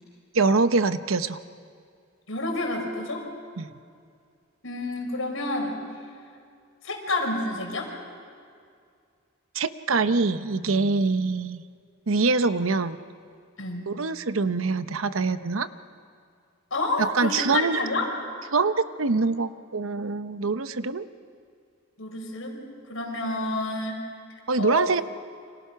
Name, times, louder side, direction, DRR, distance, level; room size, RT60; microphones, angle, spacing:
voice 1, 0.3-1.4 3.6-3.7 9.5-11.6 12.1-13.0 13.9-15.7 17.0-17.9 18.5-21.1 24.5-25.0, right 4 dB, 80° right, 12 dB, 0.8 m, -24 dB
voice 2, 2.3-3.3 4.6-5.9 6.8-7.9 13.6-13.8 16.7-18.1 22.0-24.0 24.6-25.0, left 2 dB, 75° left, 1 dB, 4.9 m, -29 dB
29.5 x 26.0 x 5.8 m, 2.3 s
head